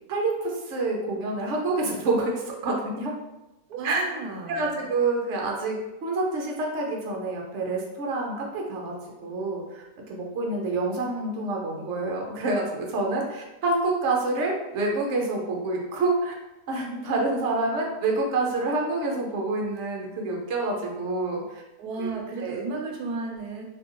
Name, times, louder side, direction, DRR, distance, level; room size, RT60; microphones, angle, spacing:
voice 1, 0.1-3.1 3.8-4.0 4.5-5.7 6.0-8.9 9.2-16.3 16.7-21.6 22.0-22.1 22.4-22.6, right 2 dB, 55° right, -1 dB, 1.1 m, -27 dB
voice 2, 3.7-4.9 21.8-23.6, right 3 dB, 90° right, 1 dB, 1.2 m, -34 dB
4.3 x 2.8 x 3.1 m, 1.0 s
omnidirectional pair, 1.6 m